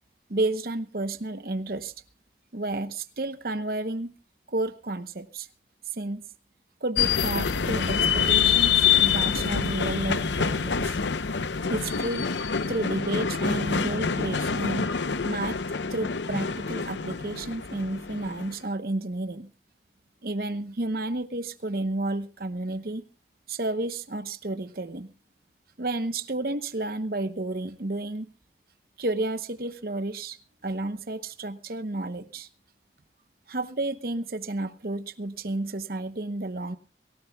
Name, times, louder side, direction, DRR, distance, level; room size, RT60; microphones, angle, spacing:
voice 1, 0.3-1.9 2.5-4.1 4.5-5.5 5.9-6.3 6.8-8.7 9.0-11.0 11.7-12.3 12.7-14.9 15.2-15.6 15.9-19.5 20.2-23.0 23.5-25.1 25.8-28.3 29.0-32.5 33.5-36.8, right 2 dB, 55° right, 10 dB, 0.9 m, -31 dB
sound 1, 7.0-18.5, left 7 dB, 85° left, 0.7 m, -26 dB
24.0 x 17.0 x 2.3 m, 0.33 s
head